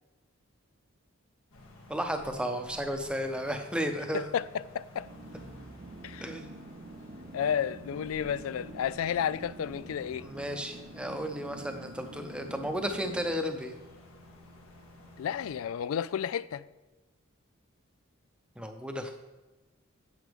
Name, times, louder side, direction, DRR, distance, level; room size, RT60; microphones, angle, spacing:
sound 1, 1.5-15.6, left 1 dB, 75° left, 1.9 m, -52 dB
voice 1, 1.9-4.3 6.2-6.5 10.2-13.7 18.6-19.2, equal, 5° right, 0.7 m, -33 dB
voice 2, 4.1-5.1 6.0-6.3 7.3-10.3 15.2-16.6, left 8 dB, 90° left, 0.3 m, -32 dB
sound 2, 5.0-13.4, right 2 dB, 40° right, 0.5 m, -47 dB
9.5 x 8.0 x 3.5 m
head